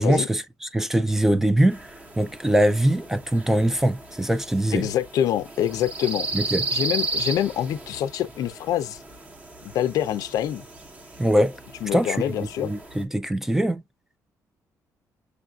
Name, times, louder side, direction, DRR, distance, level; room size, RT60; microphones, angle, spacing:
voice 1, 0.0-1.8 2.2-4.8 6.3-6.6 11.2-11.6 11.9-13.8, right 1 dB, 5° right, 0.3 m, -22 dB
sound 1, 1.7-13.0, right 3 dB, 25° right, 0.9 m, -35 dB
voice 2, 4.7-6.3 6.7-9.0 9.6-10.6 11.8-12.7, left 11 dB, 70° left, 0.5 m, -26 dB
6.3 x 2.5 x 2.3 m
cardioid pair, 180°, 6 cm